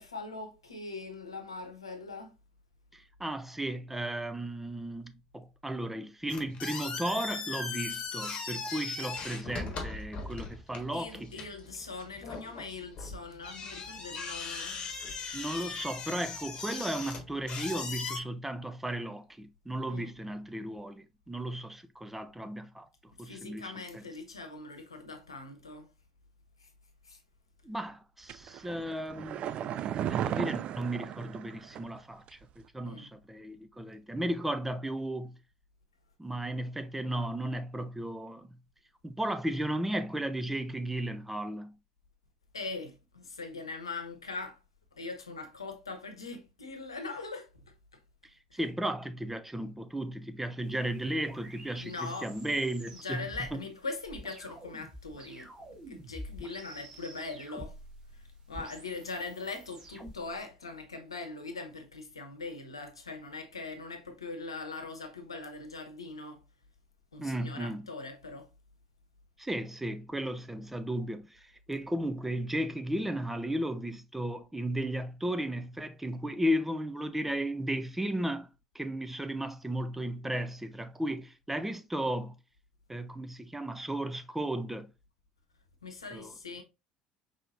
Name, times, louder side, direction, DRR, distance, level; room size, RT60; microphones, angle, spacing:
voice 1, 0.0-2.3 10.4-10.5 10.9-14.9 19.9-20.1 23.2-25.9 26.6-26.7 27.0-27.2 32.8-33.1 42.5-44.6 45.0-47.6 48.5-48.6 51.8-52.3 53.0-55.5 55.9-57.8 58.1-66.4 67.1-68.5 85.8-86.6, left 3 dB, 85° left, 0.9 m, -41 dB
voice 2, 2.9-11.3 15.3-22.9 23.2-24.0 27.6-35.4 36.2-38.6 39.0-41.7 48.5-53.3 53.5-53.6 67.2-67.8 69.4-78.5 78.7-82.3 82.9-84.9 86.1-86.3, right 1 dB, 10° right, 0.6 m, -35 dB
sound 1, 6.3-18.2, left 4 dB, 40° left, 1.4 m, -39 dB
sound 2, 28.3-32.0 32.3-32.4, right 10 dB, 45° right, 0.3 m, -35 dB
sound 3, 50.6-60.4, right 1 dB, 30° right, 1.8 m, -48 dB
5.6 x 3.5 x 2.5 m
figure-of-eight pair, 65°, 3 cm